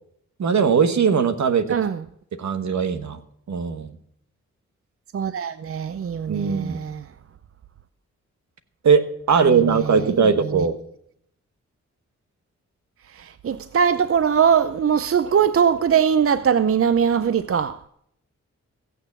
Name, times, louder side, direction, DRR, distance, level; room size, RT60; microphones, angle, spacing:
voice 1, 0.4-1.8 2.4-3.2 3.5-3.9 6.3-6.8 8.8-10.8, right 6 dB, 65° right, 1.2 m, -20 dB
voice 2, 1.7-2.0 5.1-7.0 9.4-10.7 13.1-17.8, right 7 dB, 50° right, 0.6 m, -21 dB
16.0 x 7.0 x 7.1 m
cardioid pair, 50°, 30 cm